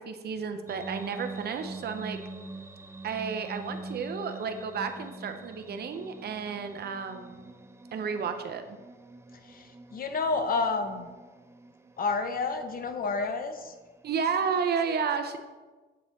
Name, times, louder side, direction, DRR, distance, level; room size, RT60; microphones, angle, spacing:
voice 1, 0.0-2.2 3.0-7.4 7.9-8.8 14.0-15.4, right 6 dB, 55° right, 7 dB, 0.6 m, -32 dB
sound 1, 0.7-14.7, right 2 dB, 15° right, 0.4 m, -45 dB
voice 2, 9.4-11.1 12.0-13.7, left 4 dB, 45° left, 7 dB, 0.7 m, -30 dB
8.2 x 3.0 x 4.2 m, 1.3 s
cardioid pair, 90°, 20 cm